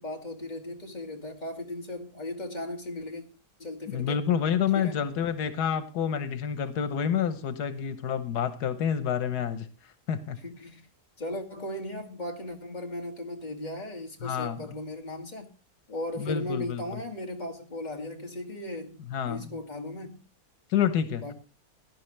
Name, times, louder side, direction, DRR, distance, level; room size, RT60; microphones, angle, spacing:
voice 1, 0.0-3.2 3.6-4.2 4.7-5.0 10.4-10.9 11.2-15.5 15.9-19.0 19.3-20.2 21.2-21.3, left 1 dB, 30° left, 2.1 m, -37 dB
voice 2, 3.9-9.7 10.1-10.4 14.2-14.7 16.2-17.0 19.1-19.5 20.7-21.3, left 8 dB, 90° left, 1.5 m, -28 dB
16.5 x 11.0 x 3.2 m
omnidirectional pair, 1.6 m